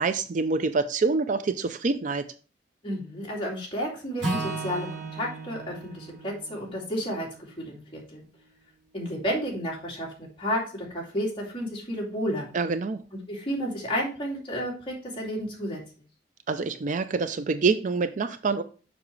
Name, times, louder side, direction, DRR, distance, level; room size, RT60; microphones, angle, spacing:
voice 1, 0.0-2.3 12.5-13.0 16.5-18.6, right 4 dB, 45° right, 0.4 m, -26 dB
voice 2, 2.8-7.3 7.6-8.2 8.9-12.6 13.3-15.8, equal, 30° left, 2.5 m, -31 dB
Acoustic guitar / Strum, 4.2-8.5, right 3 dB, 70° right, 2.9 m, -36 dB
7.1 x 5.7 x 3.2 m
head